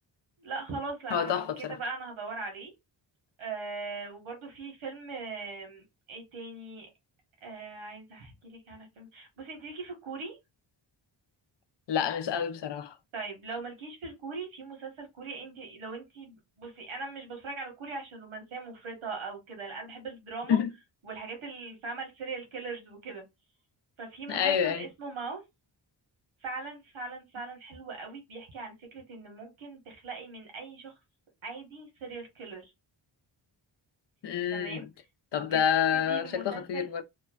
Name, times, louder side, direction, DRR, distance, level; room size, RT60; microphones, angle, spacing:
voice 1, 0.4-2.7 3.4-6.9 7.4-10.4 13.1-20.6 21.0-23.2 24.0-25.4 26.4-30.9 31.4-32.6 34.5-34.9 35.3-35.6 35.9-36.9, right 4 dB, 85° right, 1.4 m, -40 dB
voice 2, 1.1-1.8 11.9-12.9 20.5-20.7 24.3-24.9 34.2-34.8 35.3-37.0, left 8 dB, 60° left, 0.6 m, -28 dB
3.0 x 2.2 x 2.3 m
cardioid pair, 75°, 47 cm